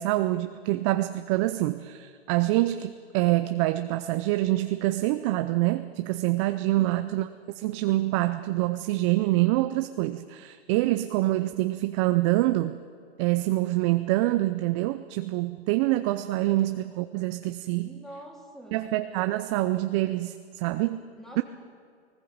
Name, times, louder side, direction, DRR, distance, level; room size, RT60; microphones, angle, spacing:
voice 1, 0.0-7.3 7.5-12.8 13.2-17.9 18.7-21.0 21.4-21.5, right 17 dB, 30° right, 10 dB, 0.6 m, -26 dB
voice 2, 6.8-7.1 17.8-18.9 21.2-21.4, equal, ahead, 0 dB, 3.1 m, -45 dB
20.5 x 19.5 x 8.7 m, 2.3 s
hypercardioid pair, 135°, 33 cm